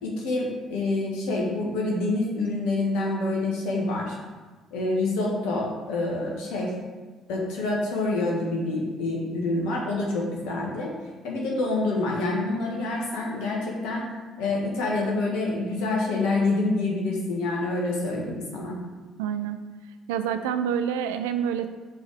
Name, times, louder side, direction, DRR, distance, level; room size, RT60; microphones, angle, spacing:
voice 1, 0.0-4.2 4.7-6.7 7.3-10.9 11.2-14.1 14.4-18.8, left 2 dB, 75° left, -2 dB, 1.7 m, -27 dB
voice 2, 19.2-19.6 20.1-21.7, right 8 dB, 80° right, 9 dB, 0.4 m, -27 dB
6.2 x 4.4 x 4.9 m, 1.3 s
hypercardioid pair, 50°, 0 cm